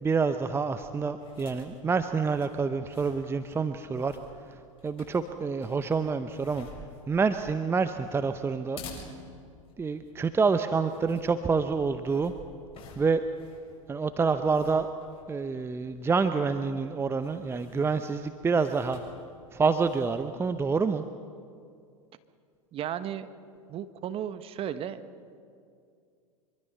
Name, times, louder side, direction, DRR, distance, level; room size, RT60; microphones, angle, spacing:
voice 1, 0.0-4.2 4.8-6.7 7.1-8.8 9.8-12.3 13.0-13.2 13.9-14.9 15.3-19.0 19.5-21.0, right 4 dB, 15° right, 10 dB, 0.7 m, -27 dB
sound 1, 1.1-20.4, left 3 dB, 30° left, 7.1 m, -52 dB
voice 2, 22.7-23.3 23.7-25.0, right 10 dB, 35° right, 12 dB, 1.2 m, -34 dB
25.0 x 23.5 x 5.5 m, 2.3 s
figure-of-eight pair, 90°, 18 cm